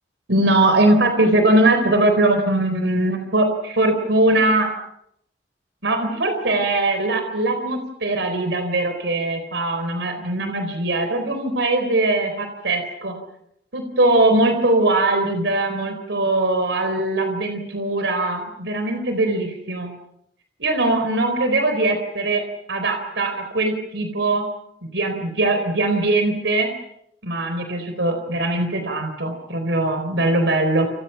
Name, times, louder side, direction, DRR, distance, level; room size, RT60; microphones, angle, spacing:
voice 1, 0.3-4.7 5.8-13.1 13.7-19.9 20.6-22.4 22.7-24.5 24.8-26.7 27.2-30.9, right 2 dB, 80° right, 6 dB, 4.2 m, -21 dB
29.0 x 28.5 x 5.8 m, 0.74 s
head